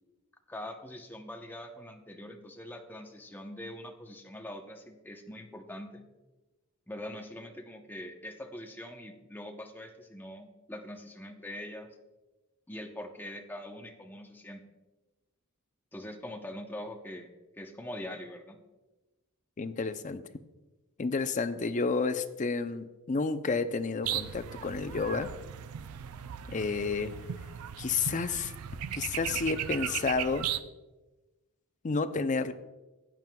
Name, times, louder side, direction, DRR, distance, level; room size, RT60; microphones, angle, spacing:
voice 1, 0.5-6.0 6.9-11.9 12.7-14.6 15.9-17.3 17.5-18.6, left 1 dB, 10° left, 4 dB, 0.8 m, -43 dB
voice 2, 19.6-20.2 21.0-25.3 26.5-27.1 27.8-28.5 28.9-30.5 31.8-32.5, left 4 dB, 35° left, 10 dB, 0.5 m, -30 dB
sound 1, 24.0-30.6, right 10 dB, 85° right, 0.4 m, -37 dB
15.0 x 9.1 x 2.3 m, 1.1 s
head